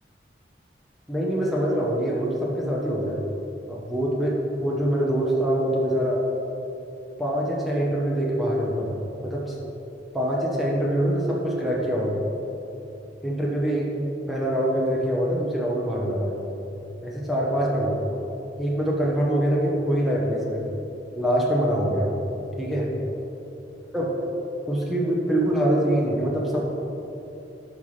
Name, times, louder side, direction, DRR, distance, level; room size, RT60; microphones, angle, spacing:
voice 1, 1.1-3.2 3.7-6.2 7.2-9.5 10.1-12.2 13.2-16.4 17.0-18.0 18.6-20.6 21.1-22.1 22.6-22.9 23.9-24.1 24.6-26.7, right 1 dB, ahead, -5 dB, 0.9 m, -24 dB
11.0 x 5.8 x 3.3 m, 2.9 s
head